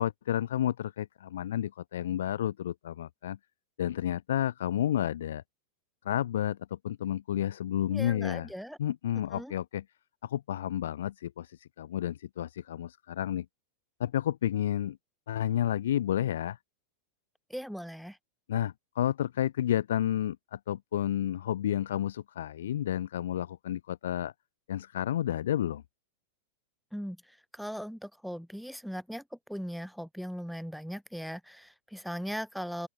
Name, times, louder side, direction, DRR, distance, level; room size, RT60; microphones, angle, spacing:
voice 1, 0.0-3.4 3.8-5.4 6.0-8.5 8.8-9.8 10.2-13.4 14.0-15.0 15.3-16.6 18.5-24.3 24.7-25.8, left 11 dB, 60° left, 4.7 m, -31 dB
voice 2, 7.9-8.8 9.3-9.5 17.5-18.2 26.9-27.2 27.5-32.9, equal, ahead, 3.4 m, -39 dB
open air
figure-of-eight pair, 90°, 0 cm